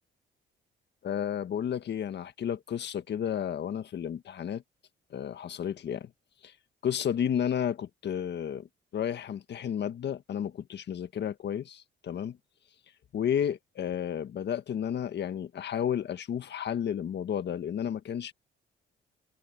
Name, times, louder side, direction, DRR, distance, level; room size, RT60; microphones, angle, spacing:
voice 1, 1.0-4.6 5.1-6.1 6.4-6.5 6.8-8.7 8.9-12.4 13.1-18.3, left 9 dB, 60° left, 1.6 m, -32 dB
cardioid pair, 90°, 20 cm